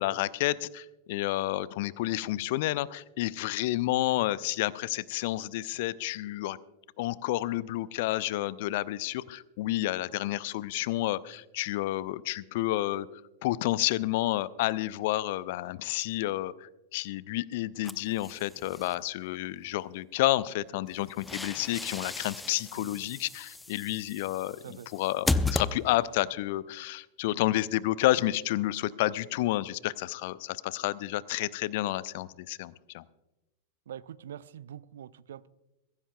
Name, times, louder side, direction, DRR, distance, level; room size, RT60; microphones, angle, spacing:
voice 1, 0.0-6.6 7.0-13.1 13.4-33.0, left 16 dB, 50° left, 20 dB, 0.5 m, -30 dB
sound 1, 17.8-19.0 20.9-26.3, left 2 dB, 5° left, 0.6 m, -35 dB
voice 2, 33.9-35.5, right 10 dB, 60° right, 19 dB, 0.5 m, -44 dB
23.0 x 15.5 x 2.3 m, 0.99 s
figure-of-eight pair, 90°, 0 cm